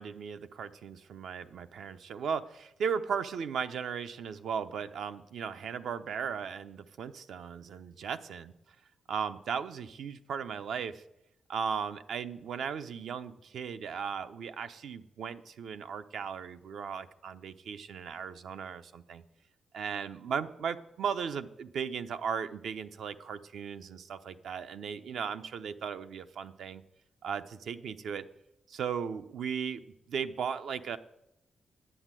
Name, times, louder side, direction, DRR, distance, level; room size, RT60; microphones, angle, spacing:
voice 1, 0.0-8.5 9.1-11.0 11.5-19.2 19.7-26.8 27.2-28.2 28.7-31.0, right 7 dB, 80° right, 9 dB, 0.6 m, -36 dB
10.0 x 8.2 x 7.5 m, 0.84 s
cardioid pair, 100°, 0 cm